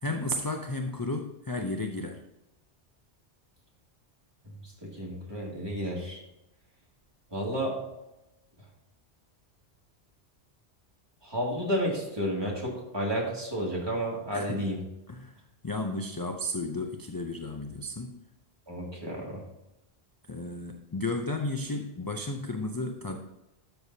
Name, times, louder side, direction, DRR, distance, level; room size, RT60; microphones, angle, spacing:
voice 1, 0.0-2.2 14.3-14.7 15.1-18.2 20.3-23.2, left 2 dB, 30° left, 4 dB, 0.4 m, -33 dB
voice 2, 5.0-6.2 7.3-7.8 11.2-14.8 18.7-19.4, equal, 20° right, -3 dB, 2.3 m, -31 dB
12.5 x 6.7 x 2.8 m, 0.91 s
omnidirectional pair, 1.2 m